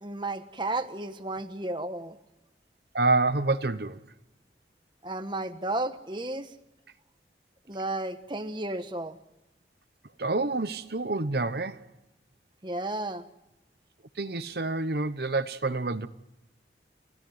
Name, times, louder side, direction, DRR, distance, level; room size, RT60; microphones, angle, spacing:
voice 1, 0.0-2.2 5.0-6.5 7.7-9.2 12.6-13.2, right 2 dB, 25° right, 1.3 m, -33 dB
voice 2, 2.9-4.0 10.2-11.8 14.2-16.1, right 3 dB, 65° right, 0.9 m, -27 dB
30.0 x 16.0 x 9.4 m
head